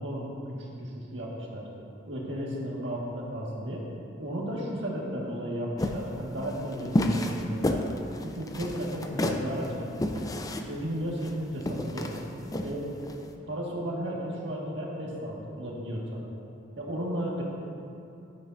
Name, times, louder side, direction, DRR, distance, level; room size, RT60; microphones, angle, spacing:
voice 1, 0.0-1.7 2.1-3.9 4.2-7.8 8.2-10.3 10.7-12.1 12.6-12.9 13.5-16.2 16.8-17.4, equal, 70° right, -3 dB, 1.7 m, -34 dB
sound 1, 5.8-13.2, left 1 dB, 20° left, 0.4 m, -31 dB
11.0 x 9.7 x 2.6 m, 2.6 s
head